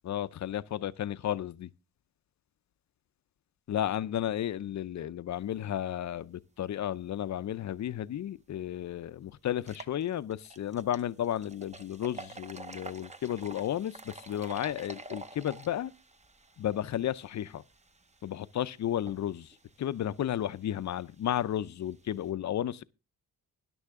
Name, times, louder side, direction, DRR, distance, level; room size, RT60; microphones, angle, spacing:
voice 1, 0.0-1.7 3.7-15.9 16.6-17.6 18.2-22.8, left 11 dB, 50° left, 0.5 m, -33 dB
sound 1, 8.3-8.4 8.8-8.9 9.5-22.3, right 3 dB, 20° right, 0.7 m, -50 dB
13.0 x 11.0 x 3.6 m
wide cardioid pair, 160°, 36 cm